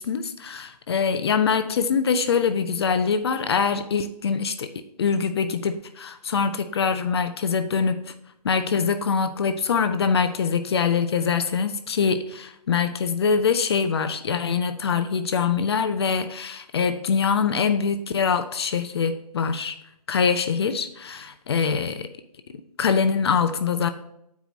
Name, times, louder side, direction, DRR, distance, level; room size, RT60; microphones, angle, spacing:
voice 1, 0.0-4.7 5.0-8.1 8.4-19.8 20.1-22.1 22.8-23.9, left 6 dB, 40° left, 9 dB, 0.5 m, -24 dB
9.1 x 4.7 x 4.1 m, 0.77 s
hypercardioid pair, 150°, 20 cm